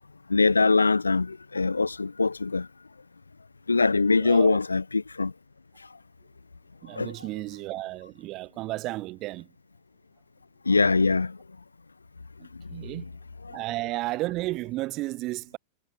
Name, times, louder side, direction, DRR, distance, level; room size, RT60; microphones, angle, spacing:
voice 1, 0.3-2.7 3.7-5.3 5.8-5.9 6.9-7.2 10.6-11.4 12.5-13.1 13.4-13.6, left 4 dB, 80° left, 4.7 m, -23 dB
voice 2, 4.2-4.6 6.8-9.5 12.4-13.1 13.5-15.6, right 18 dB, 40° right, 5.3 m, -33 dB
figure-of-eight pair, 90°, 0 cm